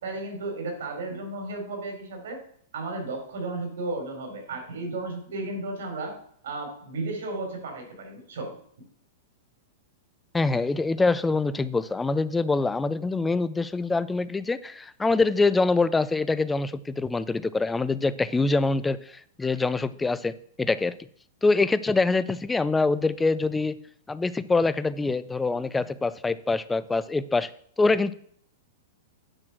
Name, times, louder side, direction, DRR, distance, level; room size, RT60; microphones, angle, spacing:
voice 1, 0.0-2.4 2.7-6.2 6.4-8.5, right 2 dB, 75° right, 3 dB, 4.2 m, -34 dB
voice 2, 10.3-20.9 21.4-23.7 24.1-27.5 27.8-28.1, left 3 dB, 5° left, 15 dB, 0.3 m, -25 dB
8.9 x 6.2 x 6.0 m, 0.62 s
supercardioid pair, 170°, 0 cm